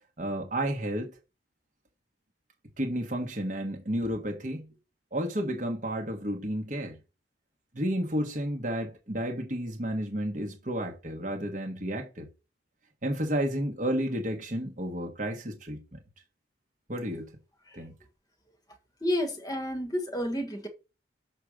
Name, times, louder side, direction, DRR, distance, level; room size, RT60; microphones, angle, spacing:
voice 1, 0.2-1.1 2.8-4.7 5.1-7.0 7.7-12.3 13.0-16.0 16.9-17.3 17.7-17.9, equal, 45° right, 1.5 m, -31 dB
voice 2, 19.0-20.7, left 1 dB, 20° left, 1.6 m, -30 dB
6.6 x 5.0 x 6.4 m
head